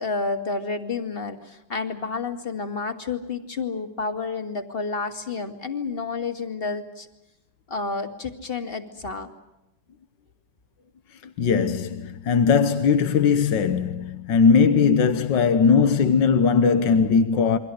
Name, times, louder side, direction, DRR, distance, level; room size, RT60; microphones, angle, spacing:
voice 1, 0.0-7.1 7.7-9.3, left 4 dB, 30° left, 2.4 m, -30 dB
voice 2, 11.4-17.6, left 6 dB, 90° left, 1.8 m, -19 dB
29.0 x 23.5 x 6.3 m
omnidirectional pair, 1.9 m